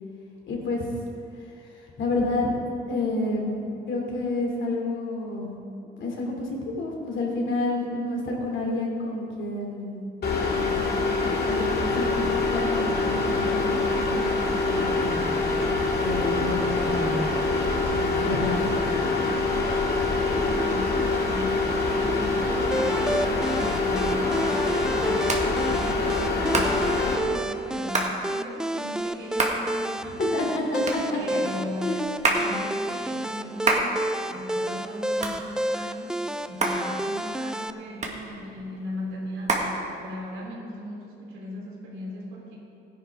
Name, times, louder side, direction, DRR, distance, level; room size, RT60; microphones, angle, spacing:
voice 1, 0.5-0.9 2.0-2.6 2.9-5.5 6.0-10.0 10.5-10.8 11.4-14.3 14.6-15.2 16.0-17.3 17.8-18.8 30.3-31.2 31.5-32.1, left 2 dB, 70° left, -1 dB, 3.0 m, -29 dB
sound 1, 10.2-27.2, left 3 dB, 55° left, 2.2 m, -25 dB
voice 2, 20.6-30.5 31.1-36.2 36.5-42.6, equal, 90° right, -3 dB, 3.5 m, -38 dB
sound 2, 22.7-37.7, right 1 dB, 5° right, 0.3 m, -30 dB
Hands, 23.8-40.4, right 2 dB, 35° right, 1.8 m, -31 dB
16.0 x 10.5 x 3.7 m, 2.5 s
cardioid pair, 90°, 20 cm